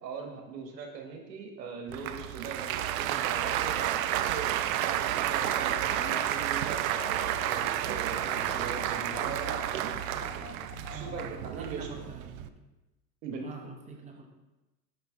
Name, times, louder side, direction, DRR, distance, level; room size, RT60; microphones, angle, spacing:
voice 1, 0.0-9.9 10.9-12.1 13.2-13.5, right 5 dB, 80° right, 2 dB, 1.4 m, -40 dB
Applause, 1.9-12.5, right 12 dB, 60° right, 0.5 m, -31 dB
sound 1, 5.3-11.3, left 10 dB, 80° left, 0.7 m, -47 dB
voice 2, 10.9-12.5 13.4-14.3, right 4 dB, 15° right, 2 dB, 0.9 m, -45 dB
5.8 x 5.3 x 3.6 m, 1.0 s
hypercardioid pair, 90°, 49 cm